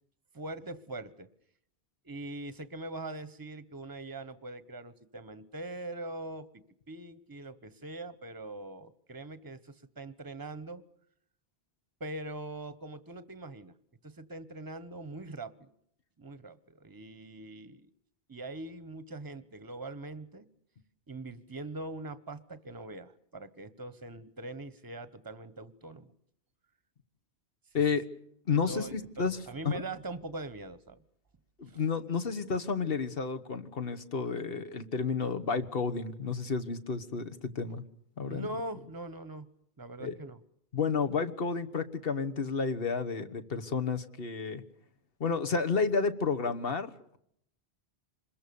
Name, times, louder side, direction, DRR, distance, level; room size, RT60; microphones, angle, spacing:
voice 1, 0.3-1.3 2.0-10.8 12.0-13.7 14.0-15.7 16.2-17.9 18.3-20.5 21.1-26.1 27.7-27.8 28.7-31.0 31.7-31.8 38.2-39.5 39.8-40.4, right 2 dB, 20° right, 14 dB, 1.0 m, -42 dB
voice 2, 28.5-29.4 29.6-29.8 31.6-37.8 38.2-38.5 40.0-40.2 40.7-44.6 45.2-47.2, left 5 dB, 60° left, 8 dB, 1.5 m, -31 dB
26.5 x 21.5 x 7.0 m, 0.72 s
omnidirectional pair, 1.1 m